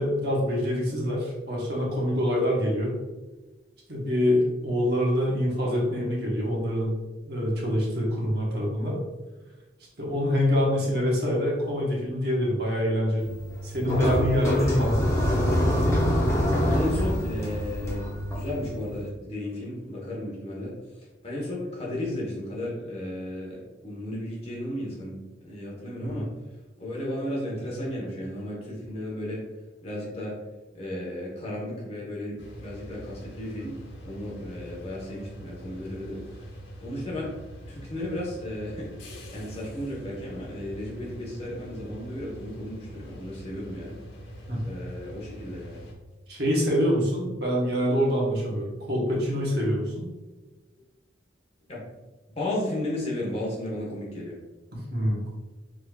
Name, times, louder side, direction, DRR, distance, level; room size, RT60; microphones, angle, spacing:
voice 1, 0.0-3.0 3.9-6.9 7.3-9.0 10.0-13.3 13.6-15.1 26.1-26.2 44.5-44.6 46.3-50.0 54.7-55.2, equal, 55° right, -3 dB, 1.2 m, -25 dB
sound 1, 13.2-19.1, equal, 15° left, 0.7 m, -26 dB
voice 2, 16.5-20.7 21.2-26.3 26.8-29.4 29.8-30.4 30.7-33.7 34.0-36.5 36.8-37.3 37.7-44.0 44.6-45.8 51.7-54.4, left 1 dB, 30° left, -4 dB, 1.2 m, -34 dB
sound 2, 32.4-45.9, equal, 85° left, 1.1 m, -43 dB
4.7 x 4.0 x 2.4 m, 1.2 s
head